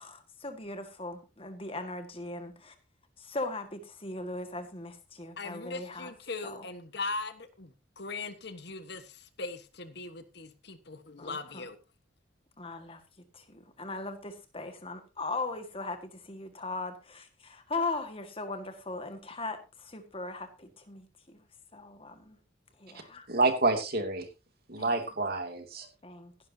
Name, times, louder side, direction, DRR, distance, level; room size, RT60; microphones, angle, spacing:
voice 1, 0.0-2.7 3.2-6.1 6.4-6.7 11.2-11.7 12.6-13.0 13.3-21.4 21.7-22.4 22.8-23.3 24.8-25.0 26.0-26.5, left 3 dB, 30° left, 1.8 m, -39 dB
voice 2, 5.4-11.8, left 3 dB, 55° left, 1.4 m, -39 dB
voice 3, 23.3-24.3 24.7-25.9, right 3 dB, 50° right, 2.7 m, -28 dB
16.5 x 11.0 x 2.9 m
head